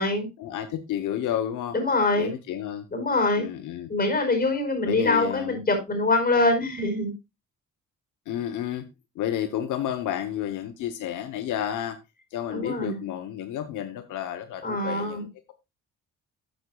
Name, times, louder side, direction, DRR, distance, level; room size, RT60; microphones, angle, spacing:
voice 1, 0.4-1.8 2.1-2.9 3.4-3.9 4.8-5.6 8.3-8.9 9.1-12.0 12.3-15.5, left 11 dB, 85° left, 9 dB, 1.0 m, -31 dB
voice 2, 1.7-2.3 2.9-3.4 3.9-7.1 12.5-13.0 14.6-15.2, left 2 dB, 30° left, 6 dB, 4.8 m, -24 dB
13.0 x 8.0 x 2.3 m, 0.24 s
cardioid pair, 90°, 30 cm